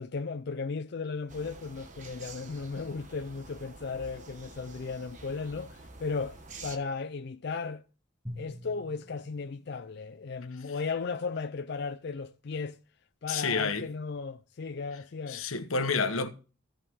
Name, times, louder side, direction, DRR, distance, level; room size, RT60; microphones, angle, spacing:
voice 1, 0.0-7.8 8.4-12.8 13.2-15.5, left 4 dB, 55° left, 0.4 m, -36 dB
sound 1, 1.3-6.8, right 3 dB, 35° right, 1.1 m, -48 dB
Drum, 8.2-10.6, left 1 dB, 5° right, 1.9 m, -46 dB
voice 2, 13.3-13.9 15.3-16.3, left 4 dB, 85° left, 1.2 m, -29 dB
15.5 x 5.5 x 3.6 m
head